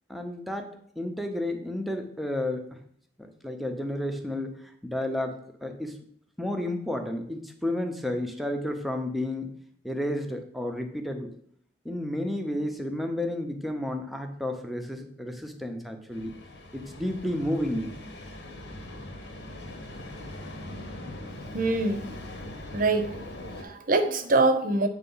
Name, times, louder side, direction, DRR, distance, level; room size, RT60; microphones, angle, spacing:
voice 1, 0.1-2.7 3.2-5.4 5.6-6.0 6.4-9.5 9.8-11.3 11.8-16.3 16.7-18.0, left 1 dB, ahead, 4 dB, 0.7 m, -31 dB
sound 1, 16.1-23.6, left 1 dB, 75° left, 1.4 m, -41 dB
voice 2, 21.5-22.0 22.7-24.9, right 2 dB, 50° right, 8 dB, 0.8 m, -24 dB
8.1 x 3.4 x 5.5 m, 0.63 s
head